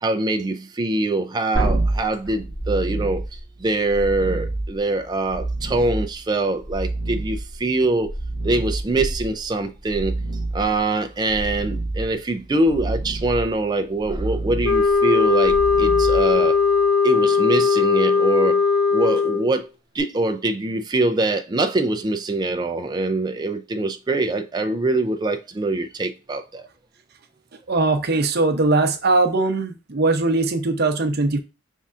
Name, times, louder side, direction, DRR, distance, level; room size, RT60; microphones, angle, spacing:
voice 1, 0.0-8.1 8.4-10.2 10.5-16.6 17.0-18.6 18.9-19.7 19.9-26.7, right 2 dB, 20° right, 0.4 m, -23 dB
sound 1, 1.5-16.8 20.0-20.1, right 2 dB, 35° left, 2.1 m, -28 dB
sound 2, 14.6-19.5, left 5 dB, 85° left, 0.5 m, -18 dB
voice 2, 27.7-31.4, right 3 dB, 55° right, 0.7 m, -20 dB
5.4 x 3.6 x 2.4 m
head